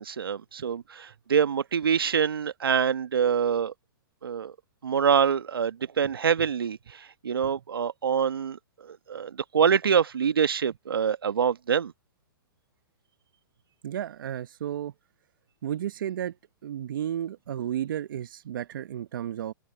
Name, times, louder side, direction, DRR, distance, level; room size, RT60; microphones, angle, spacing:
voice 1, 0.0-3.7 4.2-4.5 4.8-8.6 8.8-11.9, right 7 dB, 85° right, 1.2 m, -25 dB
voice 2, 13.8-14.9 15.6-16.3 16.6-19.5, right 10 dB, 65° right, 0.9 m, -32 dB
open air
hypercardioid pair, 130°, 12 cm